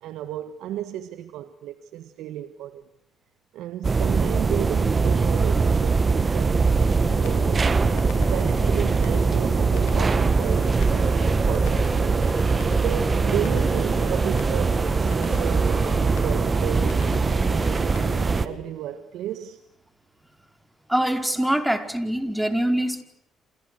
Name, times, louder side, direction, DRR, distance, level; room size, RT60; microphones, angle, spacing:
voice 1, 0.0-2.8 3.5-7.7 8.3-12.2 12.8-17.5 18.4-19.6 21.4-21.5 22.3-22.4, right 11 dB, 80° right, 1.5 m, -34 dB
sound 1, 3.8-18.5, right 4 dB, 35° right, 1.6 m, -22 dB
sound 2, 7.0-18.6, left 7 dB, 80° left, 5.0 m, -39 dB
voice 2, 20.9-23.0, right 1 dB, 5° right, 5.0 m, -24 dB
29.5 x 28.5 x 6.4 m
supercardioid pair, 60°, 0 cm